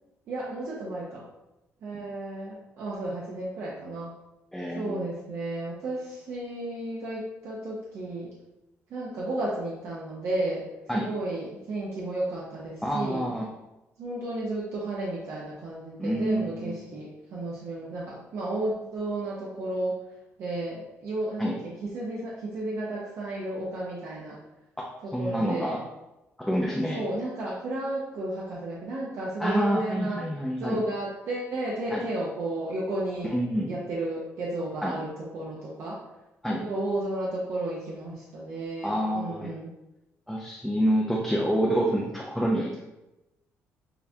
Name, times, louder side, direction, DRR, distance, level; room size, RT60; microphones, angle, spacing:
voice 1, 0.3-1.2 1.8-4.1 4.8-8.3 8.9-10.6 10.9-13.3 14.0-20.0 20.4-24.4 25.0-25.8 26.9-30.2 30.6-33.3 33.7-36.0 36.6-39.7, right 1 dB, 60° right, -5 dB, 0.8 m, -33 dB
voice 2, 4.5-5.1 10.9-11.1 12.8-13.5 16.0-16.8 21.4-21.5 25.1-25.8 26.4-27.0 29.4-30.8 31.9-32.0 33.3-33.7 34.8-35.0 36.4-36.6 38.8-39.5 40.3-42.8, equal, 5° left, -2 dB, 0.4 m, -27 dB
6.6 x 2.2 x 2.8 m, 0.96 s
cardioid pair, 145°, 5 cm